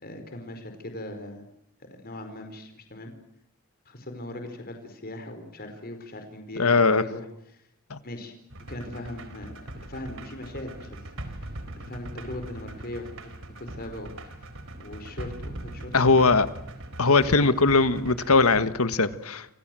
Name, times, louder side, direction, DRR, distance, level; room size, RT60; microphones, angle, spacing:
voice 1, 0.0-1.4 1.8-3.1 3.8-7.7 8.0-8.3 8.7-9.5 9.8-14.3 14.8-16.4 17.3-17.5, left 1 dB, 45° left, 4.6 m, -40 dB
voice 2, 6.6-7.0 7.9-8.0 15.9-16.5 17.0-19.5, left 3 dB, 75° left, 1.7 m, -20 dB
sound 1, 8.5-18.7, right 1 dB, 65° right, 4.1 m, -41 dB
29.0 x 26.5 x 7.7 m
head